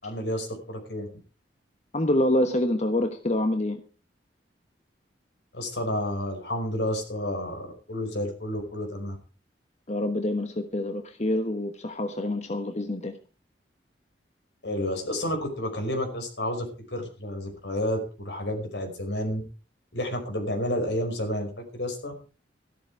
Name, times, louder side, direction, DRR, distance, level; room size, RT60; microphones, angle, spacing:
voice 1, 0.0-1.1 5.5-9.2 14.6-19.4 19.9-22.1, left 1 dB, 80° left, 4 dB, 5.2 m, -30 dB
voice 2, 1.9-3.8 9.9-13.2, left 1 dB, 40° left, 7 dB, 1.3 m, -26 dB
14.0 x 12.5 x 4.8 m, 0.36 s
head